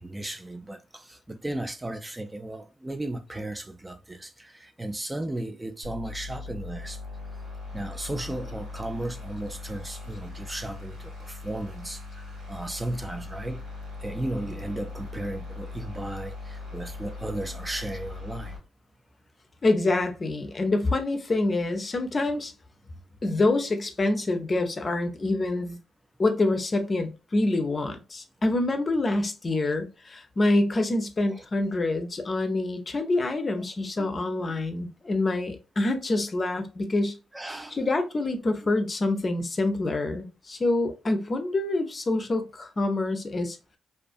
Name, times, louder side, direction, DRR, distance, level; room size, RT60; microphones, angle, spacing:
voice 1, 0.0-7.0 7.7-13.6 14.0-18.6 29.6-29.7 31.3-31.4 34.0-34.1 34.4-34.5 37.3-37.9, right 1 dB, 20° right, 0.4 m, -35 dB
sound 1, 5.8-18.6, left 3 dB, 90° right, 1.4 m, -40 dB
voice 2, 19.6-22.5 23.2-25.8 26.2-37.2 37.8-43.6, left 2 dB, 40° left, 0.5 m, -26 dB
2.4 x 2.4 x 2.4 m
supercardioid pair, 55°, 0 cm